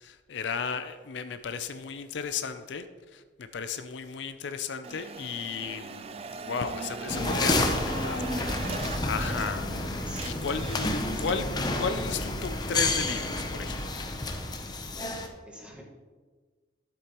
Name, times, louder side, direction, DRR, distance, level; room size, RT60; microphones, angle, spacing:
voice 1, 0.0-11.5 11.8-14.1, left 5 dB, 75° left, 10 dB, 0.5 m, -35 dB
sound 1, 4.8-9.8 10.0-11.6, right 4 dB, 30° right, 0.4 m, -40 dB
sound 2, 7.1-15.3, left 2 dB, 20° left, 0.7 m, -30 dB
voice 2, 10.0-11.2 15.0-15.8, equal, 5° right, -3 dB, 1.5 m, -48 dB
11.5 x 8.0 x 3.0 m, 1.4 s
head